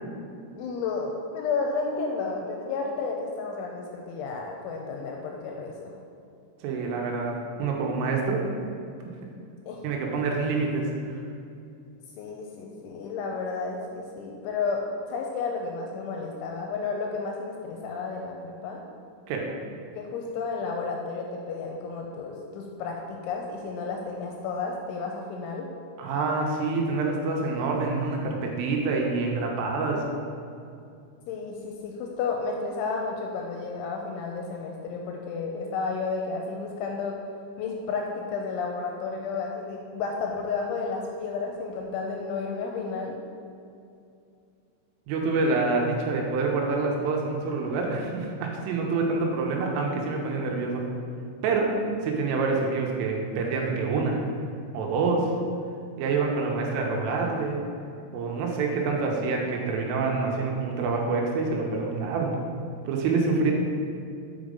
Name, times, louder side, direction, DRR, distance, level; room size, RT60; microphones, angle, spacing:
voice 1, 0.6-5.9 9.7-9.8 12.2-18.8 20.0-25.7 31.3-37.2 37.6-43.1, left 4 dB, 85° left, 1 dB, 2.8 m, -32 dB
voice 2, 6.6-8.4 9.8-11.2 19.3-19.5 26.0-30.1 45.1-50.9 51.4-51.7 52.0-54.2 54.7-55.3 56.0-57.6 58.1-62.4 62.9-63.5, right 4 dB, 85° right, 0 dB, 3.4 m, -27 dB
7.1 x 5.0 x 5.1 m, 2.5 s
omnidirectional pair, 5.8 m